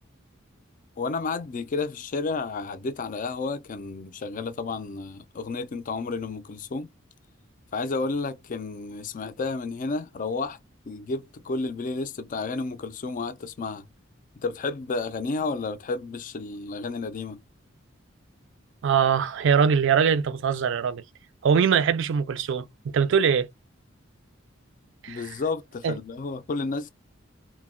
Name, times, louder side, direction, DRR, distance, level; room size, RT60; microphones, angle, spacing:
voice 1, 1.0-6.9 7.7-10.6 10.9-13.9 14.4-17.4 25.1-26.9, left 3 dB, 40° left, 0.4 m, -31 dB
voice 2, 18.8-21.0 21.4-23.5 25.0-25.2 25.8-26.0, right 7 dB, 65° right, 0.4 m, -22 dB
2.2 x 2.1 x 3.5 m
head